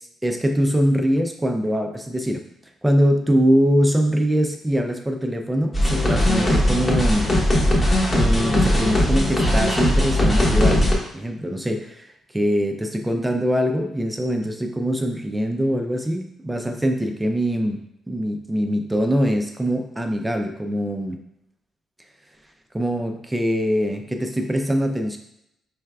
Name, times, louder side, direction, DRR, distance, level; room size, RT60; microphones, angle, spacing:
voice 1, 0.2-2.4 2.8-7.3 7.6-7.7 8.1-10.8 11.1-12.1 12.3-17.8 18.1-21.2 22.7-25.2, equal, 10° right, 5 dB, 0.4 m, -23 dB
sound 1, 5.7-11.0, left 1 dB, 30° left, 1.0 m, -19 dB
4.5 x 3.3 x 2.3 m, 0.79 s
cardioid pair, 90°, 0 cm